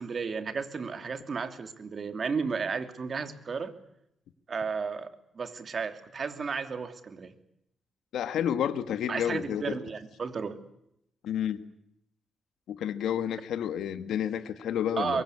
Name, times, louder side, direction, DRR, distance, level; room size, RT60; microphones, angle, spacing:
voice 1, 0.0-3.7 4.5-7.3 9.1-10.6 15.0-15.2, right 5 dB, 45° right, 9 dB, 2.9 m, -33 dB
voice 2, 8.1-9.7 11.2-11.6 12.7-15.2, left 9 dB, 85° left, 11 dB, 1.6 m, -30 dB
23.5 x 22.0 x 9.9 m, 0.78 s
cardioid pair, 110°, 0 cm